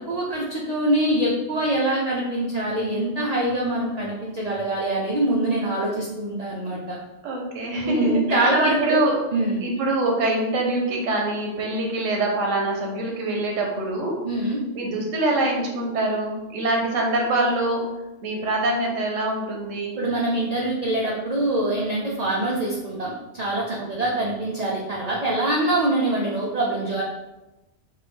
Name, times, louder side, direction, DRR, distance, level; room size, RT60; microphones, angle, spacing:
voice 1, 0.1-7.0 7.8-8.8 9.3-9.6 14.2-14.6 20.0-27.0, right 1 dB, 70° right, -4 dB, 0.3 m, -24 dB
voice 2, 7.2-9.2 9.6-17.8 18.2-20.0 23.8-23.9, right 2 dB, 90° right, 0 dB, 1.1 m, -25 dB
3.5 x 2.1 x 3.3 m, 1.0 s
omnidirectional pair, 1.3 m